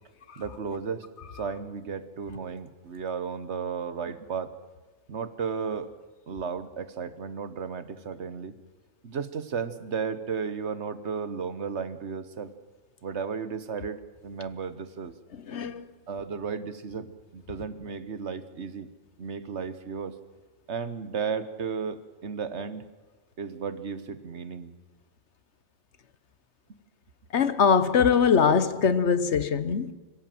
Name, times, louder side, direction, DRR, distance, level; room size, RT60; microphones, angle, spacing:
voice 1, 0.4-1.0 1.3-4.5 5.1-5.9 6.3-8.6 9.0-12.5 13.0-15.1 16.1-18.9 19.2-20.1 20.7-22.8 23.4-24.7 26.7-26.8, right 6 dB, 65° right, 1.4 m, -34 dB
voice 2, 15.3-15.9 27.3-29.9, left 6 dB, 65° left, 1.2 m, -22 dB
25.0 x 16.5 x 7.7 m
omnidirectional pair, 1.3 m